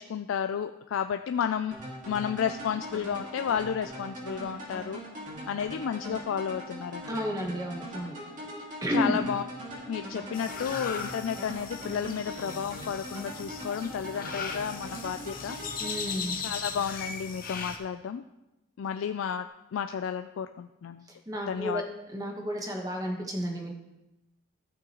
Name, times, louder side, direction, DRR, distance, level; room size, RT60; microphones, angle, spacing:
voice 1, 0.0-1.8 2.1-5.0 5.5-7.2 8.9-9.4 9.7-15.6 16.4-18.2 18.8-19.5 19.7-21.1 21.5-21.8, left 7 dB, 85° left, 8 dB, 0.3 m, -32 dB
sound 1, 1.7-16.8, equal, 40° right, 2.2 m, -41 dB
voice 2, 7.1-8.1 8.8-9.2 15.8-16.4 21.3-21.8 22.1-23.7, equal, 20° right, 1 dB, 1.2 m, -31 dB
sound 2, 10.3-17.8, left 5 dB, 45° left, 0.8 m, -38 dB
14.0 x 6.2 x 3.0 m, 0.97 s
head